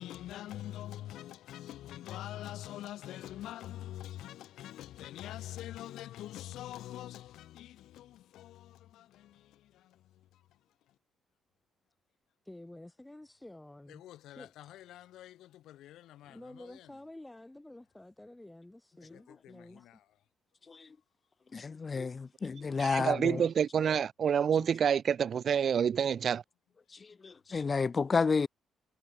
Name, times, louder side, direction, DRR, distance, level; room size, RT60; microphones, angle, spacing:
voice 1, 0.0-10.4 13.9-16.9 19.1-20.0, left 13 dB, 80° left, 0.9 m, -45 dB
voice 2, 12.4-14.0 14.3-14.5 16.2-20.0, left 1 dB, 10° left, 2.2 m, -50 dB
voice 3, 21.5-23.4 27.2-28.5, left 4 dB, 35° left, 0.4 m, -30 dB
voice 4, 22.8-26.4, right 7 dB, 55° right, 0.4 m, -28 dB
cardioid pair, 90°, 0 cm